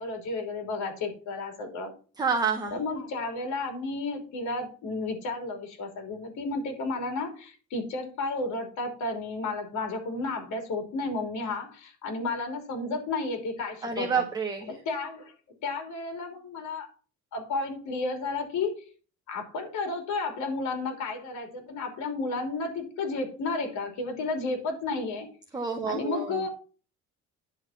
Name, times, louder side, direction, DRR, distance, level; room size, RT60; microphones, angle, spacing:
voice 1, 0.0-1.9 2.7-14.3 14.7-15.3 15.6-16.9 17.3-18.8 19.3-25.3 25.9-26.5, left 3 dB, 65° left, 4 dB, 3.1 m, -32 dB
voice 2, 2.2-2.8 13.8-14.7 25.5-26.4, right 5 dB, 10° right, 3 dB, 0.8 m, -28 dB
10.5 x 4.0 x 7.2 m, 0.38 s
cardioid pair, 170°, 31 cm